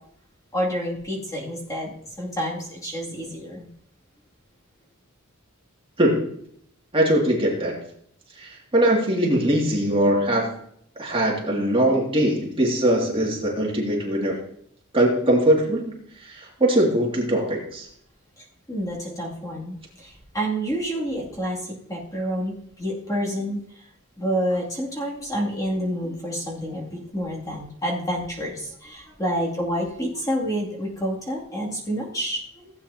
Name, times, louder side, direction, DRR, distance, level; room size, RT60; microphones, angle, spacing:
voice 1, 0.5-3.7 18.7-21.6 21.9-23.6 24.2-32.7, equal, 15° left, -3 dB, 2.5 m, -28 dB
voice 2, 6.9-7.8 8.4-10.5 11.0-14.4 14.9-15.9 16.3-17.9, right 1 dB, 25° right, -2 dB, 2.3 m, -21 dB
16.5 x 8.9 x 2.8 m, 0.70 s
head